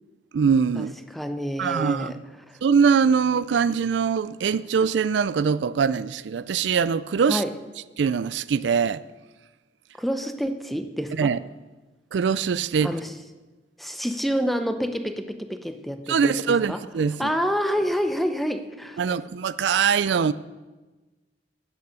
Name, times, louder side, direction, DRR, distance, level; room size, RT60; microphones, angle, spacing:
voice 1, 0.3-0.9 1.6-2.1 2.6-7.4 8.0-9.0 11.2-11.4 12.1-12.9 16.1-17.4 19.0-20.3, right 6 dB, 80° right, 0.4 m, -22 dB
voice 2, 1.1-2.2 2.5-2.6 7.3-7.5 10.0-11.3 12.8-13.1 13.8-16.8 17.2-19.0, equal, ahead, 0.7 m, -28 dB
10.5 x 9.2 x 6.8 m
head